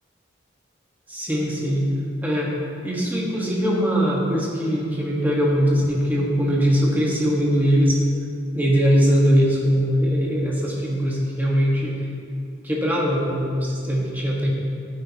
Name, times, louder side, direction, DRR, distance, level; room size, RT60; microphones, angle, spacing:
voice 1, 1.1-1.9 2.2-2.5 2.8-8.0 8.5-11.9 12.6-14.5, equal, 10° right, -4 dB, 1.4 m, -21 dB
13.5 x 8.6 x 2.9 m, 2.4 s
head